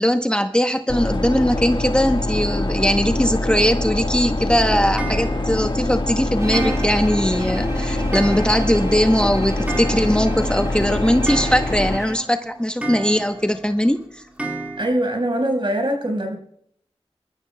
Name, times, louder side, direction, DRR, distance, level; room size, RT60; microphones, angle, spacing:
voice 1, 0.0-14.2, equal, 10° left, 6 dB, 0.8 m, -20 dB
sound 1, 0.9-12.0, left 2 dB, 50° left, 1.5 m, -24 dB
Clock, 5.0-5.7 6.5-7.3 7.6-7.7 8.1-8.9 9.2-9.3 9.5-10.5 10.8-10.9 11.3-12.1 12.8-13.5 14.4-14.9, right 2 dB, 10° right, 2.2 m, -31 dB
Bowed string instrument, 6.4-12.4, right 1 dB, 25° right, 1.6 m, -33 dB
voice 2, 14.8-16.4, right 1 dB, 50° right, 3 dB, 4.4 m, -22 dB
24.5 x 13.5 x 2.2 m, 0.67 s
cardioid pair, 45°, 11 cm